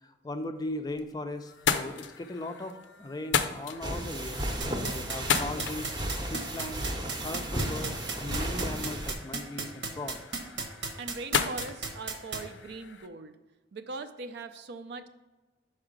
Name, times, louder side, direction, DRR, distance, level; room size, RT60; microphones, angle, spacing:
voice 1, 0.0-4.5 4.8-5.9 6.3-6.9 7.2-10.2 12.4-12.5, left 2 dB, 20° left, 7 dB, 0.4 m, -38 dB
sound 1, 0.6-1.1 1.4-13.1, left 6 dB, 80° left, 0.5 m, -36 dB
sound 2, 3.8-9.1, right 1 dB, 20° right, 0.7 m, -34 dB
sound 3, 4.6-12.4, right 4 dB, 85° right, 1.1 m, -33 dB
voice 2, 11.0-13.3 13.7-15.1, right 3 dB, 60° right, 10 dB, 0.4 m, -40 dB
5.4 x 4.8 x 5.1 m, 1.2 s
head